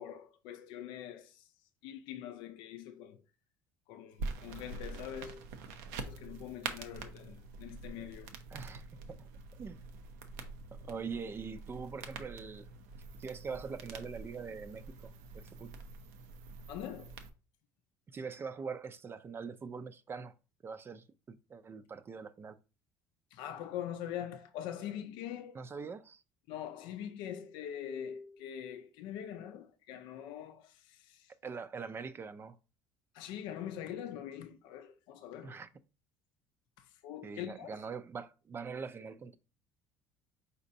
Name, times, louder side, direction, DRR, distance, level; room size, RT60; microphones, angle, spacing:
voice 1, 0.0-1.5 1.8-3.2 3.9-5.5 6.0-8.3 16.7-17.1 23.3-25.6 26.5-31.3 33.1-35.6 36.8-37.7, left 10 dB, 75° left, 0.5 m, -43 dB
sound 1, 4.2-17.3, right 4 dB, 85° right, 0.6 m, -45 dB
voice 2, 8.5-9.3 9.6-9.8 10.7-12.7 13.2-15.7 18.1-20.3 20.6-22.6 25.5-26.2 31.4-32.6 35.4-35.7 37.2-39.4, right 5 dB, 30° right, 0.4 m, -43 dB
4.2 x 4.1 x 2.6 m
supercardioid pair, 95°, 8 cm